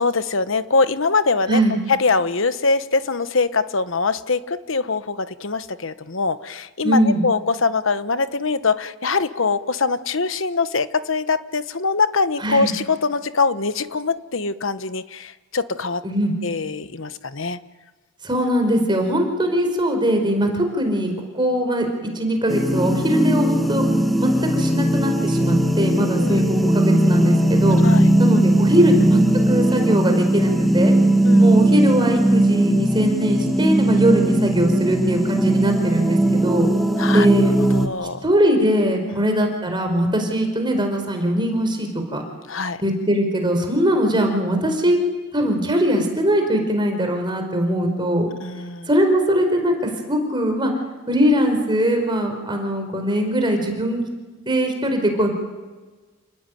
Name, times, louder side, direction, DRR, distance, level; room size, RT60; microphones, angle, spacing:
voice 1, 0.0-1.6 1.9-16.0 16.4-17.6 26.0-26.5 27.8-28.1 31.2-31.5 37.0-37.3 37.7-38.2 39.1-39.2 42.5-42.8 48.4-48.9, left 4 dB, 65° left, 12 dB, 1.2 m, -23 dB
voice 2, 6.8-7.2 12.4-12.7 16.0-16.3 18.2-23.8 24.2-27.8 28.2-29.2 29.5-31.0 31.4-36.7 37.1-37.5 38.2-42.2 42.8-45.0 45.3-48.3 48.9-50.7 51.1-54.0 54.5-55.3, equal, 25° right, 4 dB, 4.9 m, -21 dB
sound 1, 22.5-37.9, right 1 dB, ahead, 1.6 m, -18 dB
29.5 x 20.5 x 9.4 m, 1.3 s
head